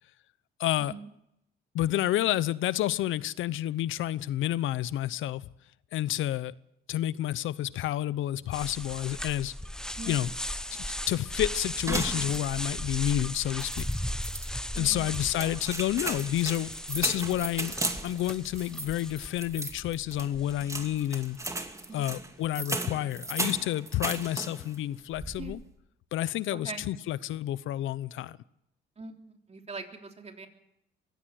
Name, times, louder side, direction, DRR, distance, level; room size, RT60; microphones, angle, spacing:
voice 1, 0.6-0.9 1.7-5.5 5.9-6.5 6.9-9.5 10.1-10.3 10.7-13.9 14.7-17.7 18.0-21.4 21.9-25.6 26.1-28.4, left 13 dB, 80° left, 0.8 m, -30 dB
sound 1, 8.5-21.0, left 1 dB, 5° left, 0.9 m, -37 dB
sound 2, 11.9-12.8 13.1-13.2 13.6-14.5 15.1-24.8 25.1-25.6, right 2 dB, 15° right, 2.4 m, -36 dB
voice 2, 14.7-15.6 21.9-22.2 25.4-25.5 26.5-26.9 29.0-29.1 29.5-30.5, right 3 dB, 30° right, 3.5 m, -42 dB
23.5 x 16.5 x 7.8 m
cardioid pair, 90°, 20 cm